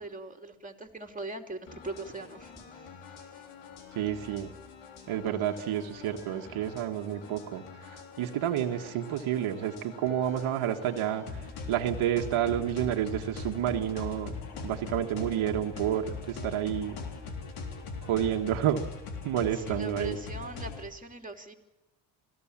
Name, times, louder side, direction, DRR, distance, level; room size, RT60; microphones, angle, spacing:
voice 1, 0.0-2.9 3.3-3.4 19.5-21.5, right 2 dB, 15° right, 4 dB, 3.3 m, -41 dB
sound 1, 1.7-20.9, left 4 dB, 85° left, 4.0 m, -42 dB
voice 2, 4.0-4.5 5.1-11.4 11.7-14.4 14.6-17.0 18.1-18.8 19.2-20.2, right 11 dB, 80° right, 4 dB, 1.8 m, -30 dB
26.0 x 17.0 x 7.5 m, 1.1 s
cardioid pair, 75°, 48 cm